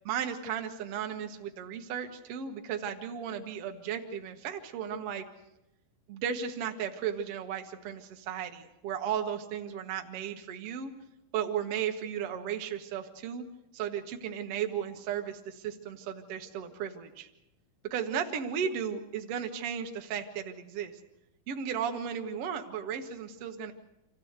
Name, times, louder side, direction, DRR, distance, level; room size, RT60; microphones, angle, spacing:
voice 1, 0.1-5.3 6.1-10.9 11.3-13.4 13.7-17.3 17.9-21.0 21.5-23.7, right 8 dB, 55° right, 5 dB, 1.9 m, -35 dB
26.5 x 15.5 x 8.0 m, 0.92 s
omnidirectional pair, 4.2 m